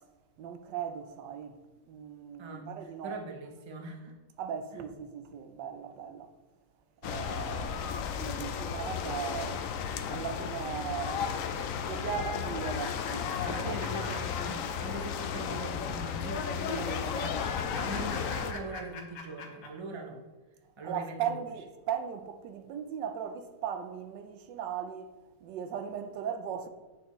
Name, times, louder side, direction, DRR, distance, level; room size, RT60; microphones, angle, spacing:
voice 1, 0.4-1.6 1.9-3.1 4.4-6.3 7.0-9.7 10.1-11.3 11.9-13.8 20.8-25.1 25.4-26.7, right 8 dB, 80° right, 1.3 m, -38 dB
voice 2, 2.4-4.2 4.7-4.8 13.4-20.2 20.8-21.4, right 2 dB, 50° right, 0.3 m, -41 dB
sound 1, 7.0-18.5, left 7 dB, 80° left, 0.7 m, -34 dB
sound 2, 11.1-14.8 15.1-15.2 16.6-19.7, left 3 dB, 60° left, 1.3 m, -42 dB
8.4 x 6.2 x 3.0 m
omnidirectional pair, 1.9 m